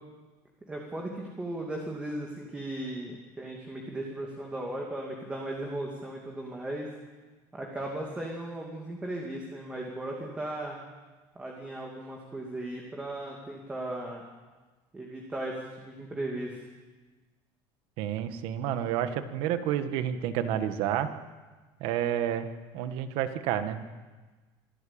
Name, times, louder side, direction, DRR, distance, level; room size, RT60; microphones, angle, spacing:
voice 1, 0.7-6.9 7.5-10.8 11.3-14.2 14.9-16.6, right 1 dB, 10° right, -1 dB, 2.6 m, -37 dB
voice 2, 18.0-21.1 21.8-22.5 22.7-23.8, right 10 dB, 65° right, 9 dB, 1.6 m, -30 dB
25.0 x 14.0 x 8.8 m, 1.3 s
cardioid pair, 165°, 10 cm